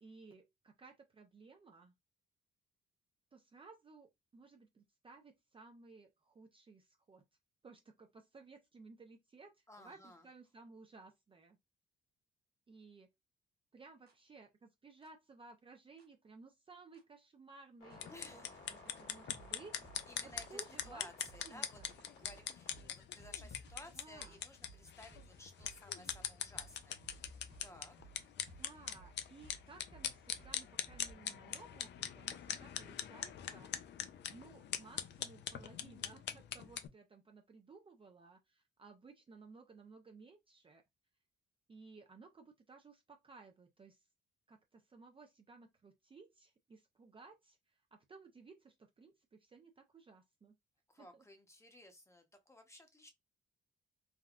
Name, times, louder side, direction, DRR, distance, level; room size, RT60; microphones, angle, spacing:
voice 1, 0.0-1.9 3.3-7.2 7.6-11.6 12.7-13.1 13.7-21.1 21.4-21.9 23.9-24.4 28.6-33.7 34.3-40.8 41.7-44.0 44.5-50.5 51.0-51.2, right 4 dB, 25° right, 0.5 m, -58 dB
voice 2, 9.7-10.2 18.1-18.6 20.1-28.1 28.4-28.9 50.9-53.1, left 1 dB, 15° left, 0.9 m, -57 dB
sound 1, 14.1-14.2 15.0-15.1 16.0-16.1 16.9-17.0 17.9-18.0 18.9-19.0 19.3-31.1, right 2 dB, 55° right, 1.2 m, -60 dB
sound 2, 17.8-22.8, left 3 dB, 85° left, 1.6 m, -58 dB
sound 3, 17.9-36.9, left 9 dB, 60° left, 0.5 m, -43 dB
3.5 x 2.2 x 2.4 m
cardioid pair, 90°, 20 cm